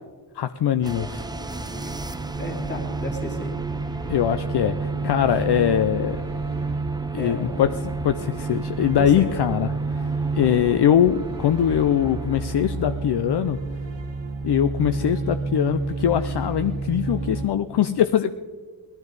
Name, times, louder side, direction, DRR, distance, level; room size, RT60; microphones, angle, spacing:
voice 1, 0.3-1.3 4.1-6.2 7.1-10.1 10.4-13.6 14.4-18.3, left 9 dB, 65° left, 10 dB, 0.6 m, -22 dB
sound 1, 0.8-14.7, right 2 dB, 10° right, 0.5 m, -36 dB
sound 2, 1.0-17.5, right 3 dB, 85° right, 1.5 m, -30 dB
voice 2, 1.9-3.5 5.2-5.6 7.2-7.4 9.0-9.3, left 1 dB, 25° left, 1 dB, 2.4 m, -34 dB
19.0 x 12.0 x 4.0 m, 1.5 s
wide cardioid pair, 150°, 44 cm